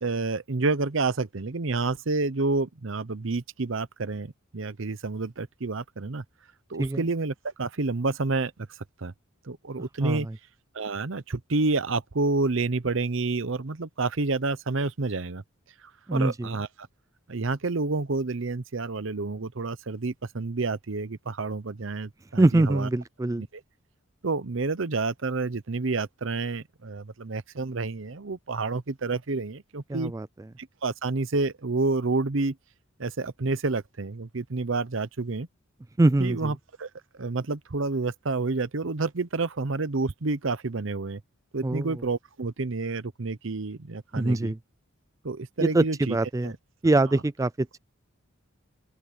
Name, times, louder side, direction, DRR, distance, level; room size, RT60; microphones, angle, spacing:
voice 1, 0.0-6.2 6.7-8.5 9.0-9.1 9.5-10.3 10.7-15.4 16.1-16.7 17.3-22.9 23.4-23.5 24.2-30.1 30.8-32.5 33.0-35.5 36.2-36.9 37.2-41.2 41.5-44.5 45.2-46.2 46.4-46.5, right 3 dB, 65° right, 0.8 m, -29 dB
voice 2, 10.0-10.3 16.1-16.5 22.4-23.4 29.9-30.3 36.0-36.5 41.6-42.0 44.2-44.6 45.6-46.5 46.8-47.8, right 2 dB, 15° right, 0.3 m, -24 dB
open air
head